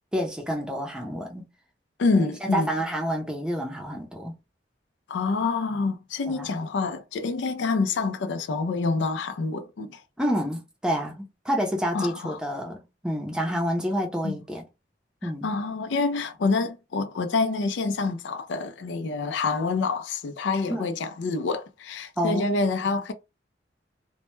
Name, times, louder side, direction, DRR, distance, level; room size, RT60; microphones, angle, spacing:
voice 1, 0.1-1.5 2.2-4.4 6.3-6.5 10.2-14.6 15.2-15.5 20.7-20.9 22.2-22.5, equal, 5° right, 0.5 m, -28 dB
voice 2, 2.0-2.7 5.1-10.0 11.9-12.4 14.2-14.4 15.2-23.1, left 4 dB, 85° left, 0.4 m, -27 dB
2.1 x 2.1 x 2.9 m
head